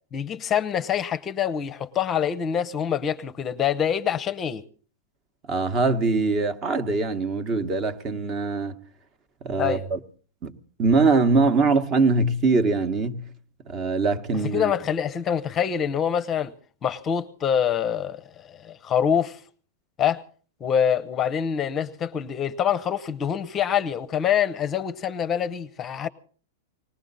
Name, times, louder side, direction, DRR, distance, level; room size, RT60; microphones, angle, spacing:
voice 1, 0.1-4.6 9.6-9.8 14.5-16.5 16.8-19.4 20.0-20.2 20.6-26.1, left 8 dB, 25° left, 0.7 m, -25 dB
voice 2, 5.5-8.8 9.4-10.0 10.4-13.3 13.7-14.7, right 3 dB, 30° right, 1.1 m, -22 dB
20.0 x 17.5 x 4.0 m
supercardioid pair, 145°, 0 cm